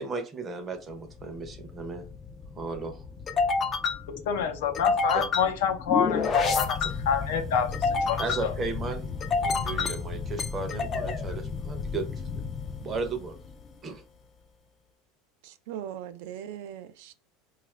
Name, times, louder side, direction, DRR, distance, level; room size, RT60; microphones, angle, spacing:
voice 1, 0.0-2.1 2.6-3.1 5.1-5.2 6.8-7.0 8.2-12.4 12.8-13.4 13.8-14.0, right 4 dB, 20° right, 0.6 m, -35 dB
sound 1, 0.9-13.7, left 4 dB, 25° left, 0.4 m, -30 dB
voice 2, 4.1-6.8 7.1-8.5, left 7 dB, 80° left, 0.7 m, -27 dB
voice 3, 15.4-17.1, right 10 dB, 65° right, 0.4 m, -39 dB
4.0 x 2.4 x 3.1 m
supercardioid pair, 160°, 0 cm